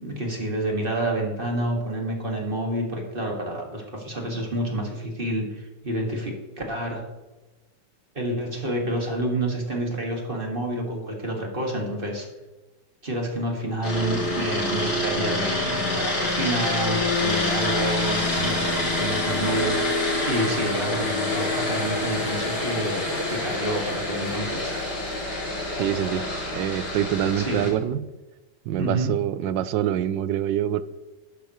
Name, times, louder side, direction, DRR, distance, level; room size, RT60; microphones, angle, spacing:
voice 1, 0.0-7.0 8.2-12.3 13.0-24.7 27.4-27.6 28.8-29.1, right 1 dB, 30° right, 0 dB, 2.0 m, -29 dB
sound 1, 13.8-27.7, left 2 dB, 65° left, 4.2 m, -26 dB
voice 2, 25.8-26.2 26.5-28.0 28.7-30.8, right 11 dB, 85° right, 15 dB, 1.3 m, -25 dB
12.0 x 10.0 x 3.1 m, 1.1 s
omnidirectional pair, 1.9 m